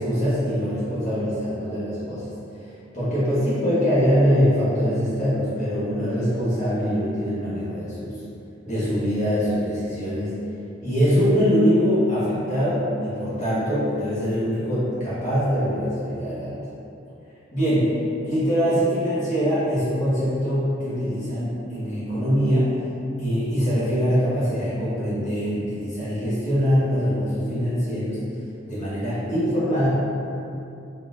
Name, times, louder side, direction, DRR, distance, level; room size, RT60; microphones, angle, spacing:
voice 1, 0.0-2.3 2.9-8.1 8.6-10.3 10.8-16.6 17.5-17.9 18.2-22.8 23.2-28.2 28.7-29.9, equal, 40° left, -12 dB, 1.3 m, -23 dB
4.1 x 3.8 x 2.5 m, 2.7 s
head